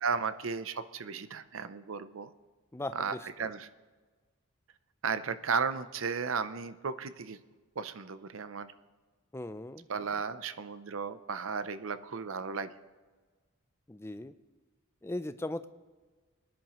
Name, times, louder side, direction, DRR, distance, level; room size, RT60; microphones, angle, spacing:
voice 1, 0.0-2.3 2.9-3.7 5.0-7.4 7.8-8.7 9.9-12.7, right 5 dB, 70° right, 13 dB, 0.6 m, -34 dB
voice 2, 2.7-3.2 9.3-9.9 13.9-14.3 15.0-15.7, left 1 dB, 10° left, 11 dB, 0.4 m, -38 dB
20.5 x 10.5 x 3.0 m, 1.4 s
head